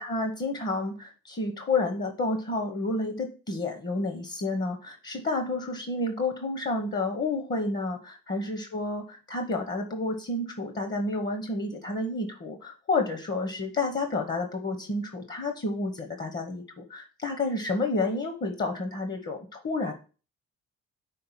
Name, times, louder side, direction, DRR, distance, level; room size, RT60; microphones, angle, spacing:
voice 1, 0.0-9.0 9.3-19.9, left 2 dB, 35° left, 5 dB, 1.1 m, -30 dB
5.7 x 3.8 x 5.7 m, 0.36 s
cardioid pair, 90°, 30 cm